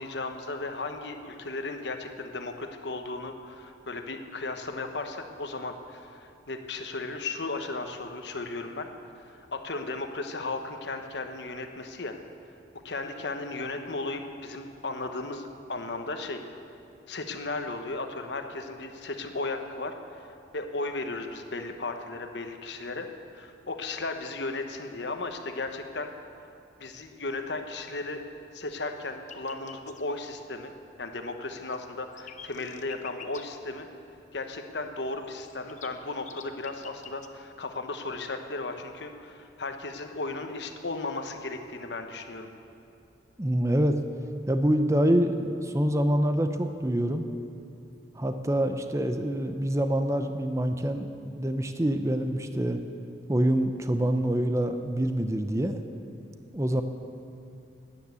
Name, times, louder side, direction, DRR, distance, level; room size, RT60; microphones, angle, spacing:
voice 1, 0.0-8.9 9.2-12.2 12.8-16.4 17.1-23.1 23.3-26.1 26.8-28.2 28.5-30.7 31.0-33.9 34.3-42.5, left 3 dB, 70° left, 6 dB, 1.1 m, -35 dB
sound 1, 29.2-30.0 31.3-33.4 35.2-37.3, left 8 dB, 40° left, 0.7 m, -47 dB
voice 2, 43.4-43.9 44.5-47.3 48.1-52.8 53.3-55.8 56.5-56.8, right 1 dB, 15° right, 7 dB, 0.6 m, -26 dB
13.0 x 10.0 x 8.3 m, 2.7 s
head